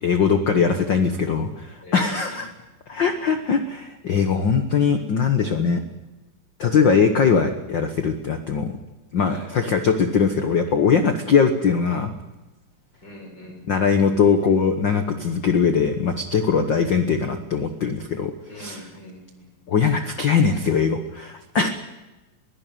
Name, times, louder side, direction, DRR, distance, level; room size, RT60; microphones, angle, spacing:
voice 1, 0.0-2.5 2.9-5.8 6.6-8.7 9.1-12.1 13.7-18.3 18.6-18.8 19.7-21.7, left 6 dB, 80° left, 8 dB, 1.0 m, -21 dB
voice 2, 1.8-2.4 9.3-9.5 13.0-13.8 18.5-19.5, equal, 30° left, 1 dB, 7.3 m, -42 dB
22.5 x 16.5 x 9.1 m, 1.1 s
omnidirectional pair, 4.0 m